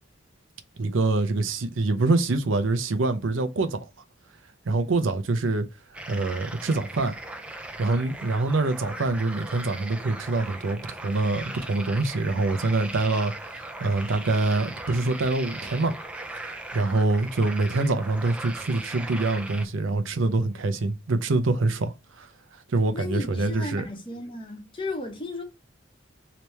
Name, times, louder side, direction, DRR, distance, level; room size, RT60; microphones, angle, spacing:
voice 1, 0.8-3.8 4.7-5.7 6.1-7.1 7.8-15.9 16.4-22.3 22.7-23.8, right 2 dB, 80° right, 0.6 m, -25 dB
sound 1, 5.9-19.7, right 2 dB, 5° right, 0.4 m, -39 dB
voice 2, 22.9-25.4, left 2 dB, 25° left, 1.0 m, -35 dB
3.3 x 2.9 x 3.1 m
head